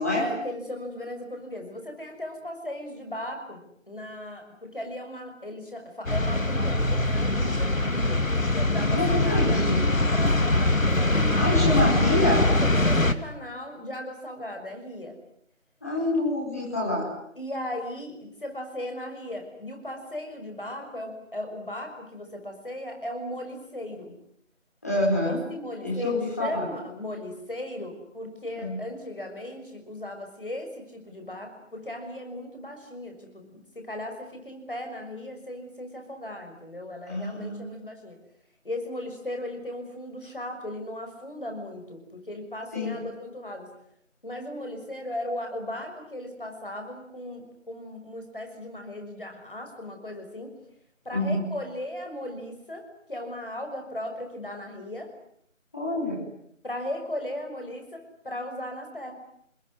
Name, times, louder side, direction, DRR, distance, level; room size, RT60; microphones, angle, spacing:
voice 1, 0.2-9.6 10.0-11.7 12.5-15.2 17.4-24.2 25.2-38.2 38.6-43.7 44.2-50.6 51.0-55.1 56.6-59.1, left 1 dB, 40° left, 4 dB, 6.4 m, -37 dB
sound 1, 6.1-13.1, left 2 dB, 85° left, 2.5 m, -23 dB
voice 2, 8.9-9.8 11.3-12.4 15.8-17.1 24.8-25.4 25.8-26.6 28.6-28.7 37.1-37.7 42.7-43.0 51.1-51.4 55.7-56.2, left 1 dB, 10° left, -5 dB, 4.9 m, -27 dB
28.5 x 21.5 x 9.8 m, 0.71 s
figure-of-eight pair, 175°, 39 cm